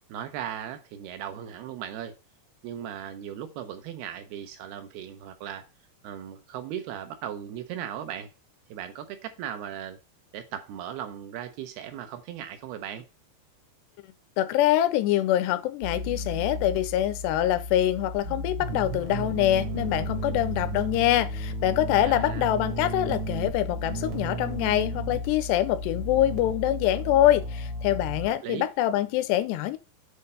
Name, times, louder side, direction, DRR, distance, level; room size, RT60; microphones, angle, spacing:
voice 1, 0.1-2.2 2.6-5.7 6.0-8.3 8.7-10.0 10.3-13.0 22.0-22.5 28.3-28.7, right 10 dB, 80° right, 2.4 m, -37 dB
voice 2, 14.4-29.8, left 13 dB, 80° left, 2.5 m, -25 dB
sound 1, 15.8-28.3, equal, 60° right, 1.3 m, -33 dB
8.5 x 4.1 x 5.3 m
omnidirectional pair, 5.0 m